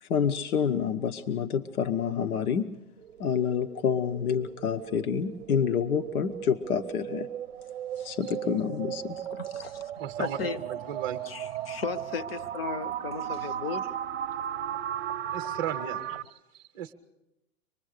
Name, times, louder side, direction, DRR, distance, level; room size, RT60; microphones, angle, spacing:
voice 1, 0.0-2.7 3.2-7.3 8.0-9.2, left 7 dB, 85° left, 1.1 m, -28 dB
sound 1, 3.0-16.2, right 10 dB, 50° right, 0.7 m, -36 dB
voice 2, 9.3-9.8 10.2-10.6 11.3-11.4 11.7-13.9, left 6 dB, 45° left, 0.8 m, -35 dB
voice 3, 10.0-11.2 15.3-16.9, right 10 dB, 15° right, 0.7 m, -36 dB
25.0 x 20.5 x 6.5 m
supercardioid pair, 180°, 43 cm